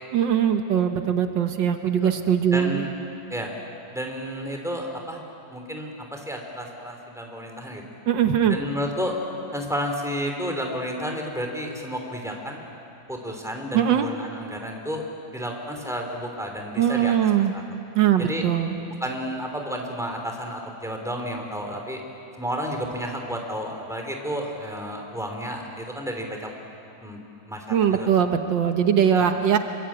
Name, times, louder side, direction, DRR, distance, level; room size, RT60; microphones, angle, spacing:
voice 1, 0.1-2.8 8.1-8.6 13.7-14.1 16.8-17.5 18.0-18.7 27.7-29.6, right 9 dB, 75° right, 6 dB, 1.8 m, -21 dB
voice 2, 2.5-2.9 3.3-3.5 3.9-5.2 5.5-7.8 8.5-9.1 9.5-12.7 13.1-15.0 15.3-17.6 18.2-18.4 19.0-22.0 22.4-26.5 27.0-28.1 29.1-29.3, equal, ahead, 2 dB, 3.3 m, -31 dB
26.5 x 24.0 x 8.8 m, 2.8 s
omnidirectional pair, 2.0 m